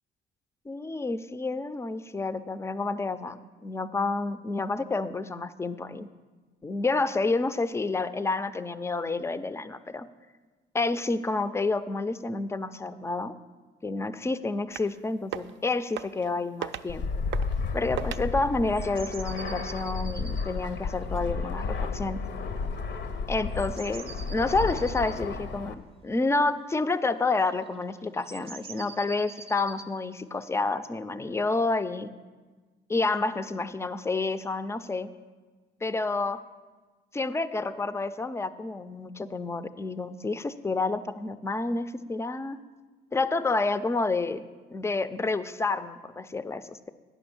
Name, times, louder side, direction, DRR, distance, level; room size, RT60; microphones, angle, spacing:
voice 1, 0.7-6.1 6.6-10.1 10.7-13.3 13.8-17.1 17.7-22.2 23.3-32.1 32.9-35.1 35.8-36.4 37.1-42.6 43.1-44.4 44.7-46.9, left 3 dB, 15° left, 13 dB, 0.4 m, -29 dB
sound 1, 14.7-15.0 15.2-15.6 16.0-16.3 16.6-16.9 17.3-17.6 18.0-18.2, right 11 dB, 70° right, 0.4 m, -36 dB
Fixed-wing aircraft airplane, 16.9-25.7, left 4 dB, 65° left, 0.7 m, -32 dB
sound 2, 18.7-21.8 23.5-25.2 27.5-27.7 28.1-29.9, right 4 dB, 30° right, 0.6 m, -45 dB
8.8 x 6.0 x 7.0 m, 1.3 s
cardioid pair, 90°, 20 cm